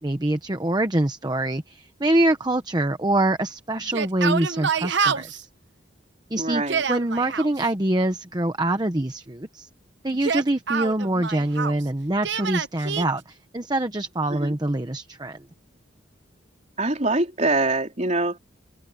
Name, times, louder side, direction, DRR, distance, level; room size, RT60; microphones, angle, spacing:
voice 1, 0.0-5.5 6.3-6.6 6.9-9.7 10.0-15.4, right 1 dB, 20° right, 1.0 m, -24 dB
Yell, 3.8-5.4 6.5-7.5 10.1-11.8 12.2-13.1, right 6 dB, 65° right, 0.8 m, -27 dB
voice 2, 6.4-6.8 14.3-14.5 16.8-18.4, right 2 dB, 35° right, 4.1 m, -24 dB
open air
head